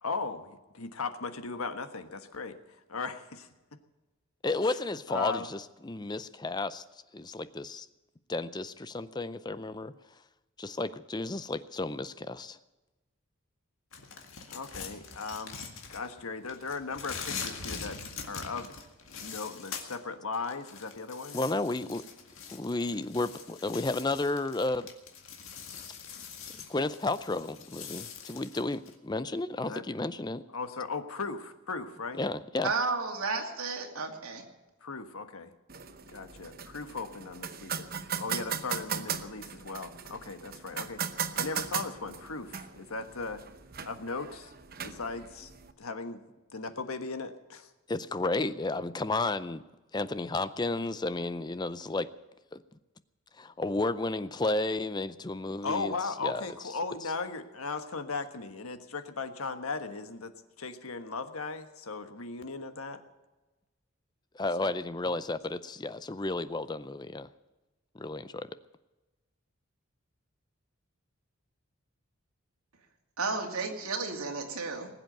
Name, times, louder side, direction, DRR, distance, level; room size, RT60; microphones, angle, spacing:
voice 1, 0.0-3.5 4.6-4.8 5.1-5.5 14.5-15.6 15.9-18.0 18.3-18.7 19.2-21.4 29.6-29.8 30.5-32.2 34.8-35.5 36.1-37.9 38.2-43.4 43.8-44.6 44.8-45.5 45.8-46.2 46.5-47.7 55.6-63.0 64.6-64.7, left 4 dB, 85° left, 9 dB, 1.4 m, -37 dB
voice 2, 4.4-6.8 7.1-7.9 8.3-9.9 10.6-12.6 21.3-22.0 22.5-24.9 26.7-30.4 32.2-32.7 47.9-49.6 49.9-52.1 52.5-52.6 53.4-55.9 56.2-56.4 64.3-67.3 67.9-68.5, left 2 dB, 20° left, 14 dB, 0.5 m, -32 dB
sound 1, 13.9-16.2 16.5-20.0 20.3-28.9, left 6 dB, 70° left, 2.0 m, -43 dB
voice 3, 32.6-34.4 73.2-74.9, right 4 dB, 90° right, 3 dB, 2.5 m, -32 dB
sound 2, 35.7-45.7, right 7 dB, 45° right, 0.9 m, -38 dB
20.0 x 8.0 x 9.1 m, 1.1 s
head